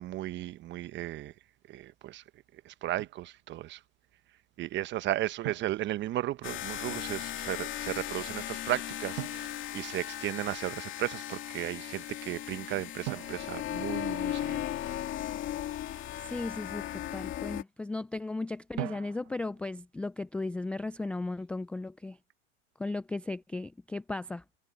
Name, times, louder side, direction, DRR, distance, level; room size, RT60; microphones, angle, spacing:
voice 1, 0.0-1.3 1.7-2.2 2.5-3.8 4.6-14.6, right 14 dB, 30° right, 1.0 m, -35 dB
Drum, 3.0-3.3 5.4-6.6 9.2-10.6 13.0-14.8 18.8-19.7, right 24 dB, 50° right, 1.4 m, -43 dB
sound 1, 6.4-17.6, left 12 dB, 30° left, 2.6 m, -37 dB
voice 2, 16.2-22.2 22.8-24.4, left 2 dB, 5° left, 0.4 m, -36 dB
hypercardioid pair, 110°, 37 cm